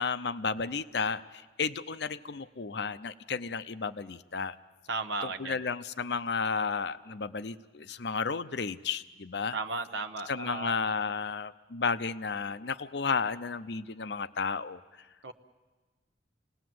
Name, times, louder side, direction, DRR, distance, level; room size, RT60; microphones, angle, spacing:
voice 1, 0.0-4.6 5.4-9.6 10.3-14.8, left 5 dB, 65° left, 13 dB, 0.6 m, -33 dB
voice 2, 4.9-5.6 9.5-10.9 15.2-15.3, right 3 dB, 80° right, 7 dB, 0.9 m, -35 dB
27.5 x 19.0 x 7.7 m, 1.3 s
head